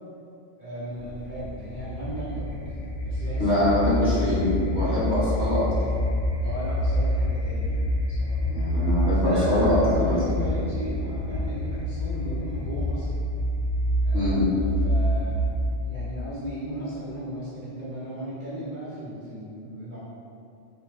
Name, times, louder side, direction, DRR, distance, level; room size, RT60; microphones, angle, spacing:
voice 1, 0.6-3.6 6.4-8.6 9.1-13.1 14.0-15.5 15.8-20.0, equal, 45° right, -12 dB, 0.9 m, -36 dB
sound 1, 1.0-15.9, left 1 dB, 65° left, 0.8 m, -27 dB
voice 2, 3.4-5.7 8.5-10.2 14.1-14.5, left 1 dB, 20° left, -13 dB, 1.4 m, -23 dB
4.2 x 2.4 x 3.2 m, 2.5 s
omnidirectional pair, 1.3 m